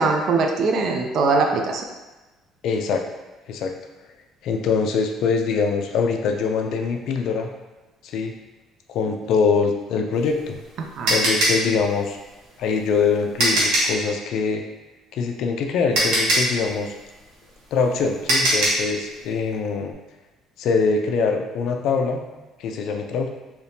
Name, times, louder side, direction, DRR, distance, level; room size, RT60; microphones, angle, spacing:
voice 1, 0.0-1.8 10.8-11.1, right 3 dB, 55° right, 3 dB, 0.4 m, -21 dB
voice 2, 2.6-3.0 3.5-3.7 4.4-7.5 8.0-8.3 8.9-10.6 11.1-12.2 12.6-14.6 15.1-16.9 17.7-19.9 20.6-22.2 22.6-23.3, left 5 dB, 65° left, 3 dB, 0.4 m, -23 dB
sound 1, 10.1-14.0 15.4-15.5 15.9-18.9, right 1 dB, 85° right, 1.1 m, -21 dB
3.4 x 2.8 x 2.7 m, 1.1 s
cardioid pair, 145°, 0 cm